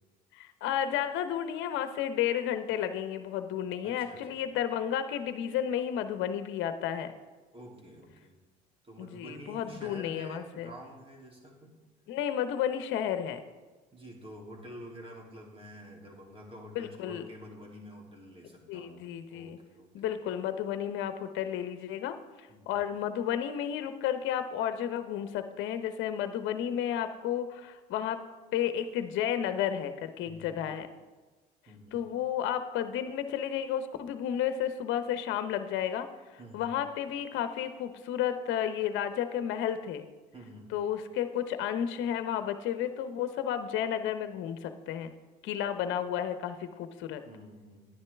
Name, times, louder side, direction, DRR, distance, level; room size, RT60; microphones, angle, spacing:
voice 1, 0.3-7.1 9.0-10.7 12.1-13.4 16.7-17.2 18.7-19.6 19.9-28.2 28.5-30.9 31.9-36.1 36.5-40.1 40.7-45.1 45.4-47.2, left 10 dB, 65° left, 10 dB, 0.8 m, -32 dB
voice 2, 3.8-4.4 7.5-8.4 8.8-11.7 13.9-20.1 22.5-22.8 30.2-30.6 31.7-32.0 36.4-36.7 40.3-40.7 47.2-47.9, equal, 25° right, -1 dB, 2.8 m, -48 dB
10.5 x 9.7 x 3.4 m, 1.3 s
hypercardioid pair, 65°, 21 cm